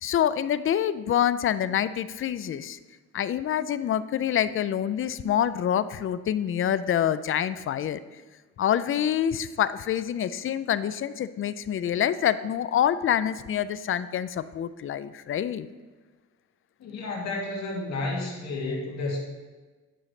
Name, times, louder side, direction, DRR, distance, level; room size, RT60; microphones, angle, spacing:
voice 1, 0.0-2.8 3.1-8.0 8.6-15.7, left 10 dB, 45° left, 15 dB, 0.4 m, -26 dB
voice 2, 16.8-19.2, left 2 dB, 65° left, -2 dB, 2.2 m, -31 dB
10.0 x 6.1 x 3.2 m, 1.3 s
cardioid pair, 90°, 30 cm